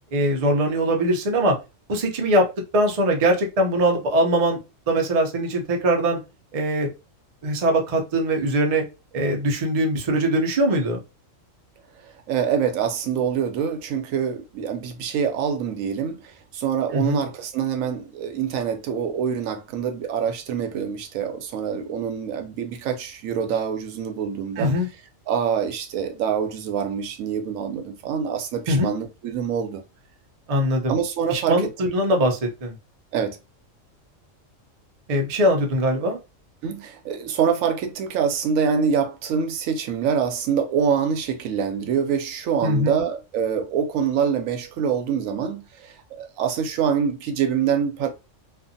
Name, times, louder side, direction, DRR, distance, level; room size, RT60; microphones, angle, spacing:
voice 1, 0.1-1.6 1.9-2.5 2.7-4.6 4.9-6.2 6.5-6.9 7.4-8.8 9.1-11.0 16.9-17.2 24.6-24.9 28.7-28.9 30.5-30.9 31.3-32.7 35.1-36.2 42.6-43.0, right 1 dB, 45° right, 0.5 m, -21 dB
voice 2, 12.3-24.7 25.3-29.8 30.9-31.9 33.1-33.4 36.6-48.1, right 7 dB, 85° right, 1.0 m, -25 dB
2.6 x 2.4 x 2.5 m
omnidirectional pair, 1.4 m